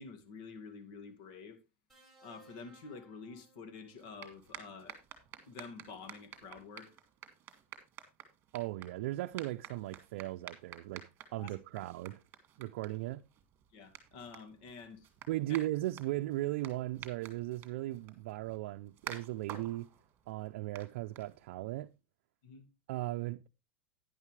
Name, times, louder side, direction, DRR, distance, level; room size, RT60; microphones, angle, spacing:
voice 1, 0.0-1.6 2.2-5.0 5.4-7.0 11.4-11.5 13.7-15.1 15.5-15.6 22.4-22.7, left 4 dB, 60° left, 2.0 m, -49 dB
sound 1, 1.9-4.2 5.5-5.7, right 3 dB, ahead, 5.7 m, -62 dB
sound 2, 3.9-21.7, right 10 dB, 35° right, 2.0 m, -52 dB
voice 2, 8.5-12.2 12.6-13.2 15.3-19.9 20.3-21.9 22.9-23.5, right 16 dB, 70° right, 0.5 m, -37 dB
11.0 x 10.0 x 3.2 m
supercardioid pair, 145°, 7 cm